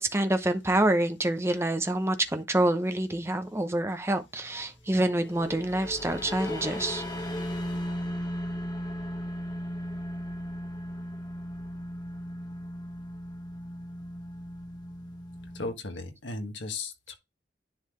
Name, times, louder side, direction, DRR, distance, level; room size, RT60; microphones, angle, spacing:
voice 1, 0.0-7.0, right 1 dB, 15° right, 0.7 m, -27 dB
sound 1, 5.0-15.7, equal, 20° left, 1.2 m, -36 dB
voice 2, 15.5-17.1, left 3 dB, 80° left, 1.6 m, -36 dB
10.5 x 3.9 x 3.1 m
head